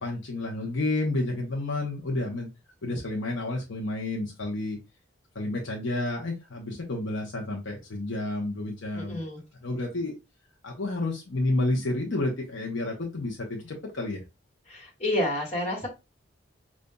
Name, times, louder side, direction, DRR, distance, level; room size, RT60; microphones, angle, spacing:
voice 1, 0.0-2.5 2.8-4.8 5.3-9.3 9.6-10.2 10.6-14.2, left 2 dB, 70° left, -1 dB, 0.8 m, -30 dB
voice 2, 8.9-9.4 14.7-15.9, left 1 dB, 30° left, -2 dB, 1.4 m, -29 dB
5.1 x 2.5 x 2.2 m, 0.26 s
head